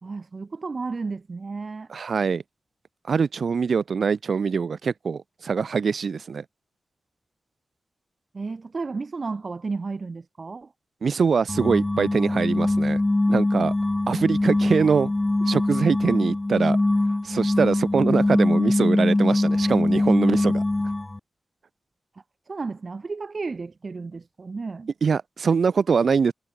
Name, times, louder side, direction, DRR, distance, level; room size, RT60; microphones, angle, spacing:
voice 1, 0.0-1.9 8.3-10.7 22.5-24.9, right 4 dB, 45° right, 2.9 m, -33 dB
voice 2, 1.9-2.4 3.1-6.4 11.0-13.0 13.3-13.7 14.1-15.1 15.4-16.8 17.2-20.6 25.0-26.3, right 5 dB, 70° right, 2.6 m, -23 dB
sound 1, 11.5-21.2, left 2 dB, 20° left, 0.4 m, -22 dB
wide cardioid pair, 105°, 0 cm